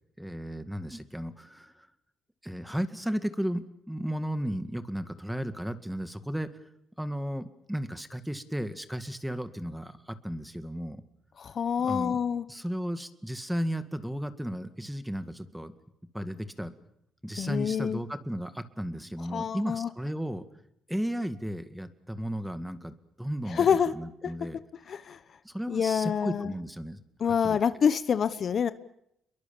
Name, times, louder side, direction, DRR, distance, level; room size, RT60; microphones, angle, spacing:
voice 1, 0.2-1.9 2.4-6.5 7.0-11.0 11.8-12.2 12.5-15.7 16.1-16.7 17.2-20.4 20.9-24.6 25.4-27.6, equal, 5° right, 10 dB, 2.0 m, -34 dB
voice 2, 11.4-12.4 17.4-18.0 19.3-19.9 23.5-23.9 24.2-24.3 24.9-25.2 25.7-26.5 27.2-28.7, left 7 dB, 55° left, 13 dB, 1.1 m, -27 dB
29.5 x 22.5 x 7.1 m, 0.78 s
cardioid pair, 90°, 0 cm